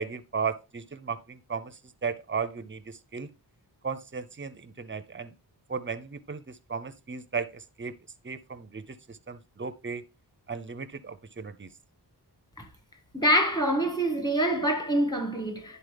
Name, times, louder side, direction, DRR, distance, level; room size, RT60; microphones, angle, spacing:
voice 1, 0.0-3.3 3.8-5.3 5.7-8.0 8.2-10.0 10.5-11.7, right 5 dB, 30° right, 0.6 m, -35 dB
voice 2, 13.1-15.8, right 1 dB, 10° left, 1.7 m, -25 dB
10.5 x 4.2 x 3.4 m
wide cardioid pair, 75°, 42 cm